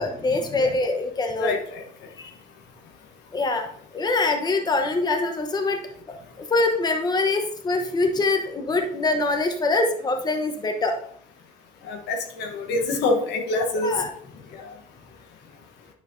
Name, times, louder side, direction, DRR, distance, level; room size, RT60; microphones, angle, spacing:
voice 1, 0.0-1.5 2.2-2.3 3.3-3.7 3.9-5.8 6.1-11.0 13.8-14.1, left 3 dB, 25° left, 5 dB, 1.0 m, -24 dB
voice 2, 1.4-1.8 11.9-14.0 14.6-14.7, left 2 dB, 85° left, 4 dB, 1.2 m, -26 dB
9.3 x 5.5 x 2.7 m, 0.63 s
cardioid pair, 110°, 17 cm